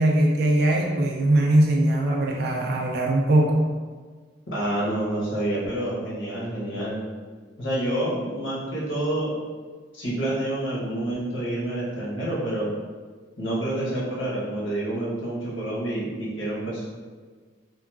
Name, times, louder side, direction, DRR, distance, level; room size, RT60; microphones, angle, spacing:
voice 1, 0.0-3.7, right 1 dB, 50° right, -1 dB, 0.3 m, -21 dB
voice 2, 4.5-7.0 7.6-9.3 9.9-12.7 13.4-16.8, right 1 dB, 75° left, -6 dB, 1.0 m, -28 dB
2.8 x 2.4 x 2.3 m, 1.5 s
head